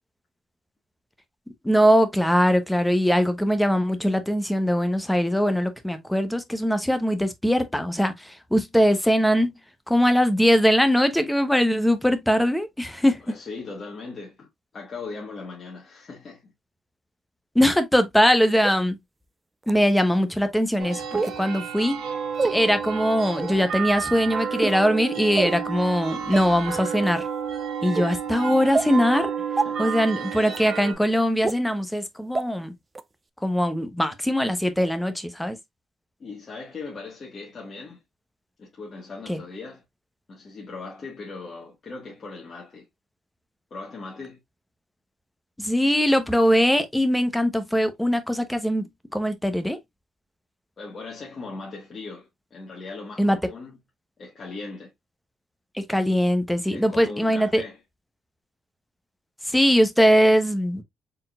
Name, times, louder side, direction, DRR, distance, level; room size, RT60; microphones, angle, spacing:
voice 1, 1.6-9.5 9.9-13.2 17.5-19.0 19.7-22.0 22.5-27.3 27.8-29.3 29.8-32.7 33.4-35.6 39.3-39.4 45.6-49.8 53.2-53.4 55.7-57.6 59.4-60.8, equal, 5° left, 0.9 m, -21 dB
voice 2, 13.2-14.5 14.7-16.5 28.3-28.6 29.5-30.1 36.2-38.0 38.6-39.8 40.3-42.9 43.7-44.4 50.8-53.8 54.2-54.9 56.7-57.8, left 3 dB, 40° left, 1.6 m, -39 dB
sound 1, 18.6-18.7 19.6-19.7 21.1-21.4 22.3-22.5 23.3-23.5 24.5-24.8 25.4-25.6 26.3-26.4 27.0-27.2 27.9-28.0 28.7-28.9 29.6-29.7 30.5-30.6 31.4-31.5 32.3-32.4 32.9-33.0, right 3 dB, 25° right, 0.4 m, -26 dB
sound 2, 20.8-30.9, right 7 dB, 70° right, 1.2 m, -31 dB
4.4 x 3.7 x 2.3 m
cardioid pair, 90°, 0 cm